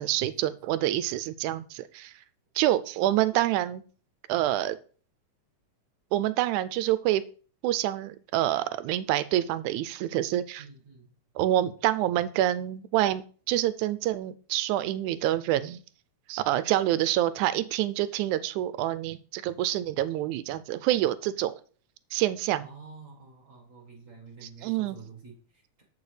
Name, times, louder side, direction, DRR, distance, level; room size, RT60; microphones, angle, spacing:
voice 1, 0.0-2.1 2.6-3.8 4.3-4.8 6.1-7.2 7.6-10.6 11.4-15.8 16.3-21.5 22.1-22.7 24.4-25.0, right 13 dB, 85° right, 14 dB, 2.0 m, -27 dB
voice 2, 10.6-11.1 22.6-25.8, right 4 dB, 35° right, 0 dB, 1.3 m, -49 dB
14.0 x 4.7 x 3.2 m, 0.40 s
omnidirectional pair, 3.4 m